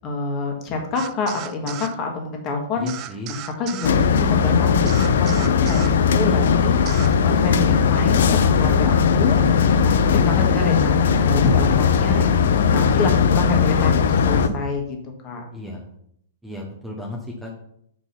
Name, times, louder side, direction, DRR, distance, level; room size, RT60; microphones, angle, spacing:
voice 1, 0.0-9.4 9.8-12.2 12.7-14.8 15.2-15.4, left 3 dB, 25° left, 2 dB, 1.4 m, -27 dB
sound 1, 1.0-1.9 2.9-4.0 4.9-6.0 6.9-7.2, right 13 dB, 30° right, 0.3 m, -35 dB
voice 2, 2.8-3.3 12.1-12.6 15.5-15.8 16.4-17.5, equal, 5° right, -1 dB, 0.8 m, -34 dB
sound 2, 3.8-14.5, left 6 dB, 70° left, 0.6 m, -18 dB
6.3 x 4.5 x 5.6 m, 0.71 s
hypercardioid pair, 160°, 0 cm